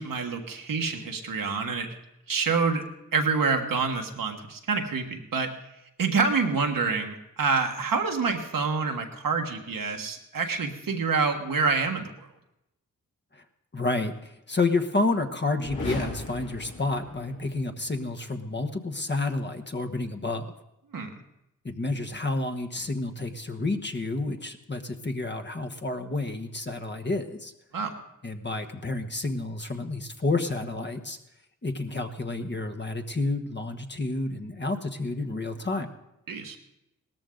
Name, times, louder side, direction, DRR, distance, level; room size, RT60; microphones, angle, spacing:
voice 1, 0.0-1.9 2.3-2.8 3.1-5.5 6.0-12.3 20.9-21.1 27.7-27.9 36.3-36.6, right 4 dB, 80° right, 3 dB, 1.6 m, -27 dB
voice 2, 13.7-20.5 21.6-27.5 28.2-31.2 31.6-35.9, left 2 dB, 30° left, 7 dB, 1.2 m, -30 dB
sound 1, 15.6-17.6, left 2 dB, 70° left, 4.5 m, -37 dB
17.5 x 13.5 x 3.9 m, 0.86 s
cardioid pair, 60°, 33 cm